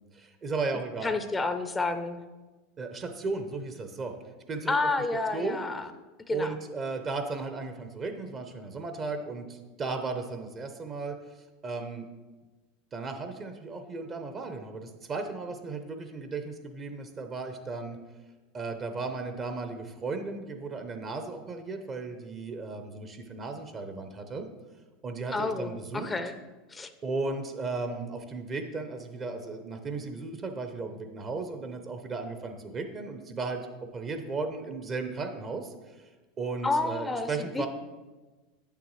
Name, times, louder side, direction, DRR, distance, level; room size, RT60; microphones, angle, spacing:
voice 1, 0.1-1.1 2.8-4.1 4.5-4.8 5.3-5.6 6.3-12.1 12.9-18.0 18.5-24.5 25.0-26.1 27.0-33.6 33.9-36.1 36.4-37.7, right 3 dB, 35° right, 6 dB, 0.8 m, -35 dB
voice 2, 0.7-2.2 4.7-5.9 6.3-6.5 25.3-26.3 26.7-26.9 36.6-37.7, left 3 dB, 15° left, 9 dB, 0.5 m, -30 dB
8.6 x 6.8 x 3.2 m, 1.2 s
hypercardioid pair, 95°, 0 cm